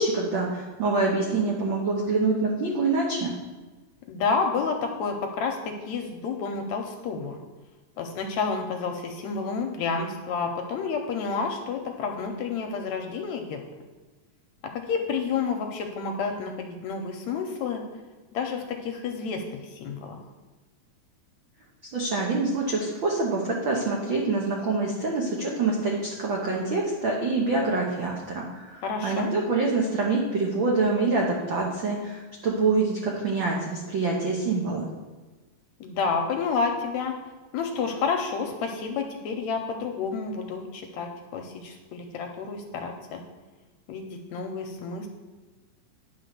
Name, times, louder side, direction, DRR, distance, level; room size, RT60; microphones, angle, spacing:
voice 1, 0.0-3.3 21.9-34.9, right 3 dB, 85° right, -2 dB, 1.0 m, -26 dB
voice 2, 4.1-7.4 8.0-13.6 14.7-17.8 18.3-20.2 28.8-29.3 35.8-37.1 37.5-43.2 43.9-45.1, left 5 dB, 75° left, 4 dB, 1.7 m, -30 dB
10.0 x 3.9 x 6.7 m, 1.3 s
omnidirectional pair, 3.7 m